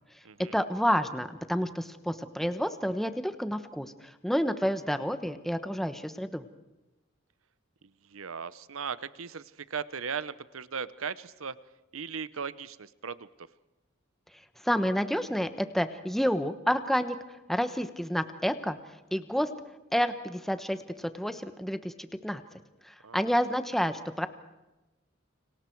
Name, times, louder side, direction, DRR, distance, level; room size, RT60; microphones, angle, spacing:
voice 1, 0.5-6.4 14.6-17.1 17.5-18.8 19.1-19.5 19.9-22.4 22.8-24.3, equal, ahead, 9 dB, 1.1 m, -29 dB
voice 2, 7.8-11.5 11.9-13.3 23.0-23.3, right 6 dB, 80° right, 16 dB, 0.9 m, -38 dB
30.0 x 26.0 x 4.7 m, 1.0 s
head